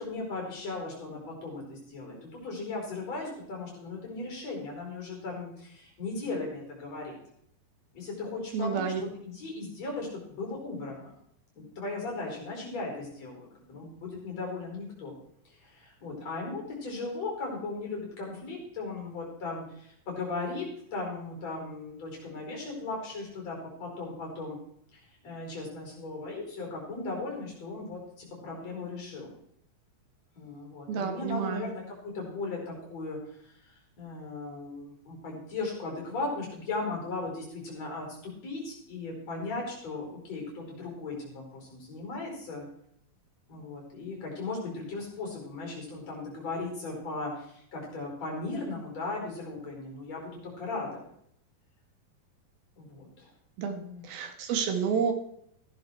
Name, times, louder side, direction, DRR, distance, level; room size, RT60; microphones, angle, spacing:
voice 1, 0.0-7.2 7.9-11.2 11.6-15.1 15.6-20.7 20.9-24.6 24.9-29.3 30.4-42.7 43.5-51.0 52.8-53.3 53.7-54.0, left 3 dB, 45° left, -1 dB, 5.7 m, -37 dB
voice 2, 8.5-9.0 30.9-31.7 53.6-53.8 54.1-55.1, right 7 dB, 85° right, 4 dB, 3.6 m, -29 dB
16.0 x 10.5 x 4.6 m, 0.69 s
omnidirectional pair, 4.2 m